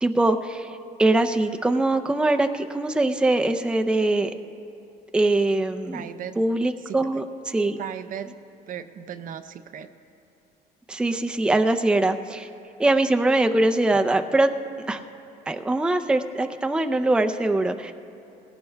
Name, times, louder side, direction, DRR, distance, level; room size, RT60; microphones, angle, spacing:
voice 1, 0.0-4.3 5.1-6.1 6.4-7.8 10.9-12.5 12.8-14.5 14.9-15.0 15.5-17.9, right 2 dB, 5° right, 7 dB, 0.5 m, -22 dB
voice 2, 5.9-6.4 6.9-7.0 7.8-8.3 8.7-9.9, right 9 dB, 55° right, 11 dB, 0.6 m, -36 dB
20.5 x 17.5 x 2.3 m, 2.7 s
cardioid pair, 110°, 17 cm